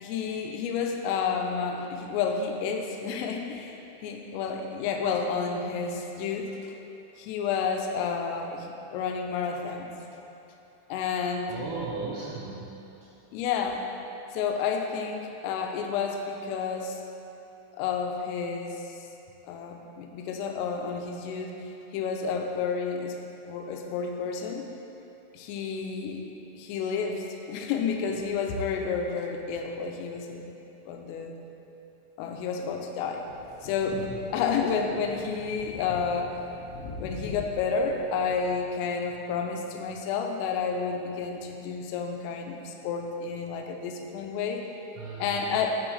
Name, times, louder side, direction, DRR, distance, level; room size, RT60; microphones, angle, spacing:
voice 1, 0.0-6.7 7.2-9.9 10.9-11.5 13.3-13.8 14.3-17.0 17.8-19.0 19.5-23.2 23.4-24.7 25.3-26.3 26.6-30.5 30.9-31.4 32.2-33.2 33.6-36.4 37.0-44.7 45.2-45.8, left 5 dB, 90° left, 3 dB, 3.2 m, -30 dB
voice 2, 11.5-12.9 45.0-45.6, right 4 dB, 80° right, -7 dB, 2.4 m, -36 dB
sound 1, 33.2-38.7, left 2 dB, 75° left, 3.2 m, -43 dB
9.4 x 6.1 x 3.2 m, 2.9 s
omnidirectional pair, 5.8 m